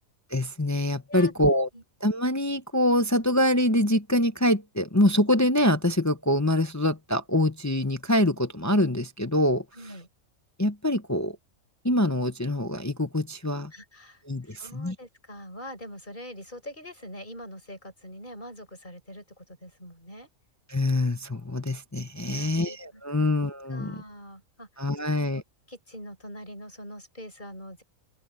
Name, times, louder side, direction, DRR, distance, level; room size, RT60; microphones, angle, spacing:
voice 1, 0.3-1.7 2.0-9.6 10.6-11.4 11.8-13.7 14.3-14.9 20.7-23.9 24.8-25.4, left 1 dB, 15° left, 0.6 m, -25 dB
voice 2, 9.7-10.1 13.7-20.3 22.2-23.3 23.7-25.4 25.7-27.8, equal, 35° left, 7.9 m, -44 dB
open air
omnidirectional pair, 1.5 m